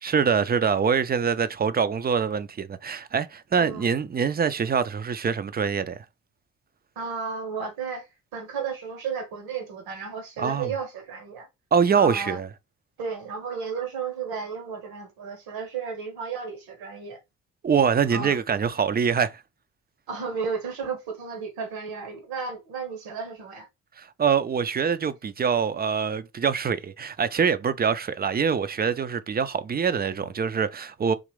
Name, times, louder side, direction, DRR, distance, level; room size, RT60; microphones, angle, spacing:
voice 1, 0.0-6.0 10.4-10.7 11.7-12.5 17.6-19.4 24.0-31.1, right 6 dB, 25° right, 0.5 m, -24 dB
voice 2, 3.6-3.9 7.0-8.0 8.3-11.5 11.9-12.4 13.0-17.2 18.1-18.4 20.1-23.7, right 5 dB, 75° right, 1.3 m, -33 dB
3.8 x 2.9 x 3.2 m
hypercardioid pair, 45°, 37 cm